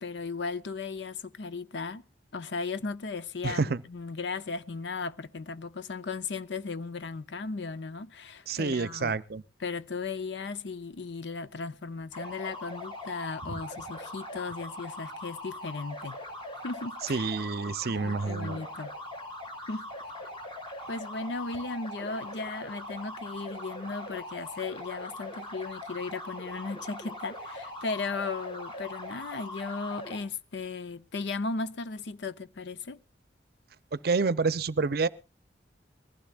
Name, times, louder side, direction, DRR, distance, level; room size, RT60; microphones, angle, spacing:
voice 1, 0.0-2.0 2.3-9.2 9.6-16.2 16.6-17.3 17.9-18.9 19.7-19.9 20.9-33.0, left 4 dB, 70° left, 0.7 m, -36 dB
voice 2, 3.4-3.8 8.5-9.4 17.1-18.6 33.9-35.1, right 4 dB, 55° right, 0.6 m, -28 dB
sound 1, 12.1-30.2, left 1 dB, 30° left, 2.7 m, -41 dB
22.0 x 15.5 x 2.4 m
head